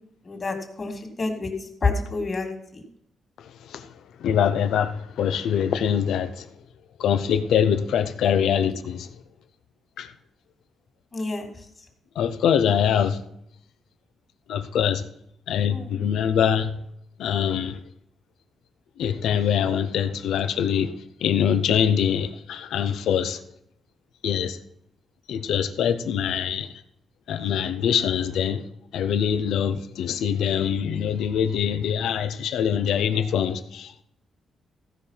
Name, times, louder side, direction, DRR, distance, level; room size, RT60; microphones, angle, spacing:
voice 1, 0.2-2.8 11.1-11.5 15.7-15.9, left 3 dB, 40° left, 2.6 m, -28 dB
voice 2, 3.4-6.5 7.0-9.2 10.0-10.1 12.1-13.3 14.5-15.0 15.5-16.9 17.2-17.8 19.0-20.9 21.2-23.4 24.2-24.6 25.3-26.8 27.3-28.7 28.9-33.9, left 8 dB, 85° left, 0.8 m, -24 dB
15.5 x 5.2 x 5.7 m
cardioid pair, 95°, 0 cm